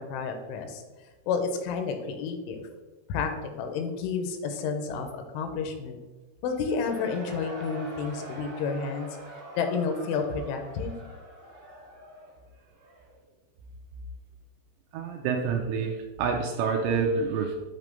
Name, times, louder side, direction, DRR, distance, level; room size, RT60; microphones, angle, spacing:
voice 1, 0.1-0.8 1.3-2.6 3.1-3.3 3.6-5.1 5.3-6.0 6.4-9.1 9.6-11.0, left 5 dB, 80° left, 6 dB, 3.1 m, -30 dB
Cheering / Crowd, 6.4-13.2, right 1 dB, 45° right, 1.7 m, -44 dB
voice 2, 14.9-17.6, right 5 dB, 80° right, 3 dB, 2.6 m, -27 dB
8.2 x 3.2 x 5.2 m, 1.2 s
omnidirectional pair, 5.5 m